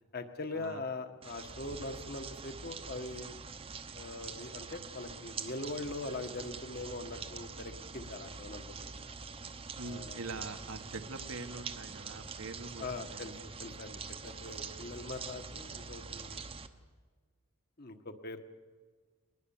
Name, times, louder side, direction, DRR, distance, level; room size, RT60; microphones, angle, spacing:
voice 1, 0.1-3.4 3.9-9.1 9.8-10.2 12.8-16.4 17.8-18.4, left 2 dB, 45° left, 7 dB, 1.5 m, -42 dB
sound 1, 1.2-16.7, right 5 dB, 25° right, 0.9 m, -45 dB
voice 2, 9.7-13.5, right 3 dB, 80° right, 7 dB, 1.8 m, -44 dB
21.5 x 20.5 x 7.3 m, 1.5 s
head